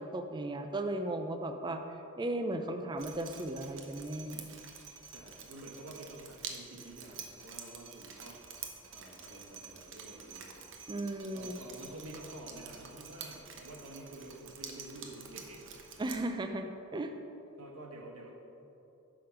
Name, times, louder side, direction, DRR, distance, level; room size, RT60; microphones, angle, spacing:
voice 1, 0.0-1.8 2.2-4.5 10.9-11.5 16.0-17.1, right 1 dB, 20° right, 6 dB, 0.3 m, -36 dB
Drip, 3.0-16.2, right 6 dB, 60° right, 0.7 m, -48 dB
voice 2, 5.1-8.6 8.9-10.5 11.3-15.7 17.6-18.3, right 1 dB, 80° right, -1 dB, 1.0 m, -49 dB
5.9 x 5.0 x 5.7 m, 2.8 s
head